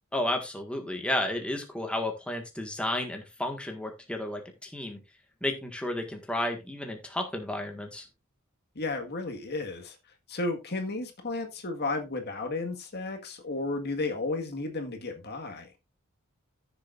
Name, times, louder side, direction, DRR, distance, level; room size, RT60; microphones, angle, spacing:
voice 1, 0.1-5.0 5.4-8.0, left 1 dB, 5° left, 1.7 m, -32 dB
voice 2, 8.7-10.0 10.3-15.7, left 2 dB, 50° left, 1.7 m, -33 dB
15.0 x 7.0 x 2.5 m
head